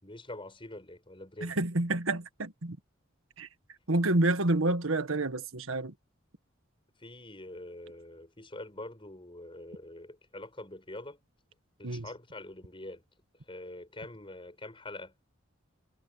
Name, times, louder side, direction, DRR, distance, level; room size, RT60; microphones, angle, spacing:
voice 1, 0.0-1.6 7.0-11.2 11.8-13.0 13.5-15.2, left 1 dB, 25° left, 7.6 m, -45 dB
voice 2, 1.4-2.8 3.4-3.5 3.9-5.9 11.8-12.0, right 2 dB, 85° right, 1.6 m, -28 dB
head